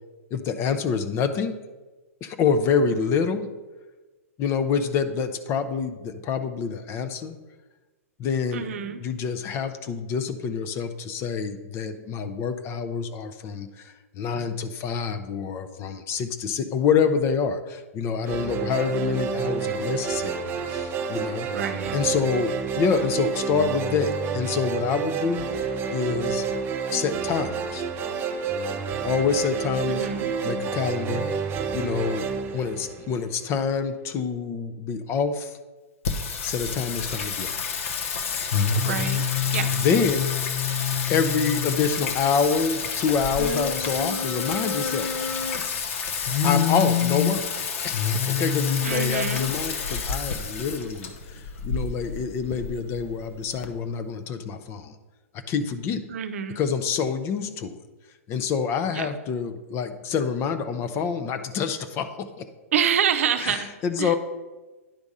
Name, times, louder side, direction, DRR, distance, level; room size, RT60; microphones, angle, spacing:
voice 1, 0.3-1.6 2.2-3.5 4.4-7.4 8.2-21.5 21.9-26.5 26.9-27.8 29.0-30.1 30.4-31.3 31.7-32.3 32.5-35.6 36.4-37.8 38.7-39.1 39.7-40.3 41.1-45.4 46.4-47.4 47.8-55.0 55.5-56.0 56.6-57.7 58.3-62.5 63.4-64.2, left 6 dB, 30° left, 9 dB, 0.6 m, -27 dB
voice 2, 8.5-9.0 21.5-22.0 29.9-30.3 38.8-39.2 39.5-39.7 48.8-49.5 56.1-56.6 58.9-59.1 62.7-63.7 64.0-64.2, right 8 dB, 65° right, 8 dB, 0.7 m, -27 dB
sound 1, 18.3-33.5, right 6 dB, 25° right, 0.7 m, -29 dB
Singing, 36.0-53.6, left 6 dB, 65° left, 0.9 m, -27 dB
10.0 x 3.5 x 5.4 m, 1.2 s
hypercardioid pair, 115°, 8 cm